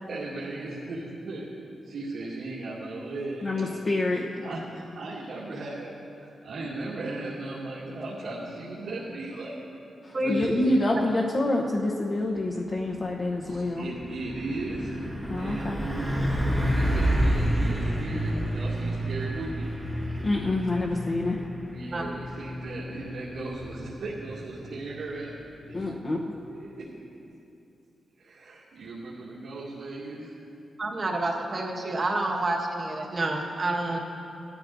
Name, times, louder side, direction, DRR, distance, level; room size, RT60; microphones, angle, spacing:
voice 1, 0.1-9.7 10.1-10.7 13.5-15.0 15.3-19.7 21.7-25.3 25.7-26.9 28.2-30.4, right 2 dB, 75° right, -9 dB, 2.3 m, -37 dB
voice 2, 3.4-4.3 10.0-13.9 15.3-15.8 20.2-21.4 25.7-26.2, left 2 dB, 35° left, -3 dB, 0.9 m, -27 dB
voice 3, 10.1-10.7 21.9-22.0 30.8-34.0, right 2 dB, 35° right, 0 dB, 1.3 m, -28 dB
Truck, 12.8-13.0 13.4-25.9, equal, 5° right, 1.4 m, -30 dB
18.5 x 13.5 x 2.6 m, 2.7 s
wide cardioid pair, 165°, 0 cm